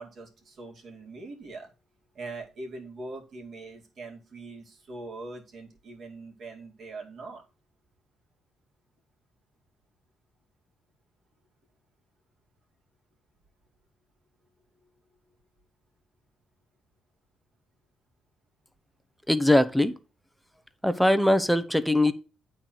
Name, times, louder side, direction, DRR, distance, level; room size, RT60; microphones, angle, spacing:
voice 1, 0.0-1.7 2.1-7.4 14.8-14.9, right 3 dB, 55° right, 2.1 m, -42 dB
voice 2, 19.3-19.9 20.8-22.1, left 1 dB, ahead, 0.7 m, -21 dB
8.7 x 3.9 x 5.9 m
cardioid pair, 90°, 0 cm